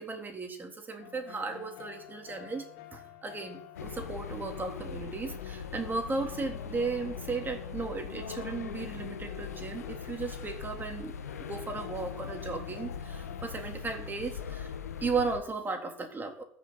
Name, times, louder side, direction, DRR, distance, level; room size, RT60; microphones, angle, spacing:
voice 1, 0.0-14.7 15.0-16.4, right 4 dB, 25° right, 4 dB, 3.6 m, -36 dB
sound 1, 1.0-13.5, left 11 dB, 60° left, 1.8 m, -49 dB
sound 2, 3.8-15.4, left 6 dB, 85° left, 1.1 m, -41 dB
13.5 x 6.7 x 9.6 m, 0.65 s
hypercardioid pair, 70°, 8 cm